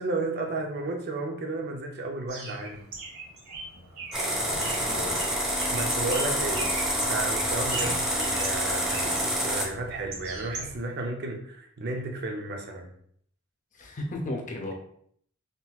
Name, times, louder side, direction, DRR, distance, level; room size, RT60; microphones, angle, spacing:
voice 1, 0.0-2.9 5.7-12.9, right 2 dB, 50° right, 2 dB, 0.5 m, -33 dB
Bird, 2.3-11.0, right 3 dB, 90° right, 1.3 m, -41 dB
sound 1, 4.1-9.6, equal, 5° right, 0.6 m, -27 dB
voice 2, 4.4-5.2 7.8-7.9 13.7-14.7, left 1 dB, 35° left, 1 dB, 0.6 m, -35 dB
sound 2, 4.5-10.8, equal, 80° left, 0.8 m, -45 dB
3.7 x 2.8 x 2.3 m, 0.65 s
head